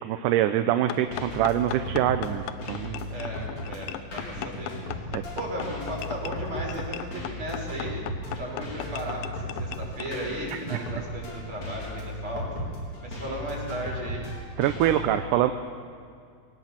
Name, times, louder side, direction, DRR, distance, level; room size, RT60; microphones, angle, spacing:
voice 1, 0.0-3.1 5.1-5.2 10.7-10.8 14.6-15.5, right 12 dB, 75° right, 8 dB, 2.2 m, -24 dB
sound 1, 0.9-10.1, left 13 dB, 90° left, 2.5 m, -38 dB
sound 2, 0.9-15.0, equal, 50° left, 5.1 m, -36 dB
voice 2, 3.1-12.6 13.0-14.3, right 1 dB, 35° right, -3 dB, 6.9 m, -36 dB
23.0 x 18.5 x 7.4 m, 2.3 s
omnidirectional pair, 3.9 m